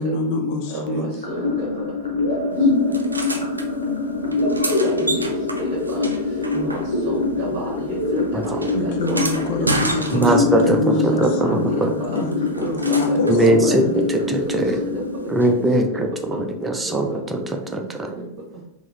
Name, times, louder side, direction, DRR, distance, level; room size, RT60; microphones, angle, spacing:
voice 1, 0.0-1.1 8.7-12.7 13.0-13.9, left 2 dB, 50° left, 3 dB, 0.5 m, -26 dB
voice 2, 0.7-1.7 2.8-2.9 4.4-4.5 4.8-5.3 5.6-6.1 6.5-6.8 7.0-8.2 8.6-9.2 9.6-9.7 10.1-10.6 11.1-11.5 12.1-12.3 12.6-13.9 14.5-14.6 14.9-15.3 15.9-16.0 16.3-16.4 16.9-17.1 18.2-18.3, right 1 dB, 40° right, -3 dB, 0.9 m, -30 dB
sound 1, 1.2-17.2, left 3 dB, 70° left, 0.9 m, -24 dB
Door open and close, 2.9-3.7 4.3-7.2 7.5-10.7 12.1-13.4 15.4-15.5, right 2 dB, 80° right, 0.3 m, -30 dB
voice 3, 10.1-11.9 13.3-13.8 14.1-14.8 15.3-18.1, right 1 dB, 10° right, 3 dB, 0.4 m, -21 dB
3.4 x 2.0 x 3.1 m, 0.83 s
figure-of-eight pair, 90°, 0 cm